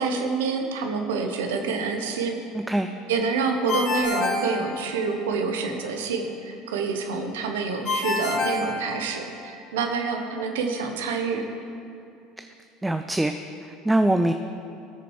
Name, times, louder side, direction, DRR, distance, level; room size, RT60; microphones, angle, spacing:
voice 1, 0.0-2.4 3.1-11.4, right 4 dB, 70° right, 4 dB, 0.9 m, -27 dB
voice 2, 2.5-2.9 12.4-12.5 12.8-13.4 13.6-14.3, right 1 dB, 10° right, 7 dB, 0.4 m, -23 dB
Ringtone, 3.7-5.3 7.9-9.5, left 3 dB, 40° left, 2.1 m, -27 dB
17.0 x 6.8 x 3.2 m, 2.6 s
figure-of-eight pair, 70°, 0 cm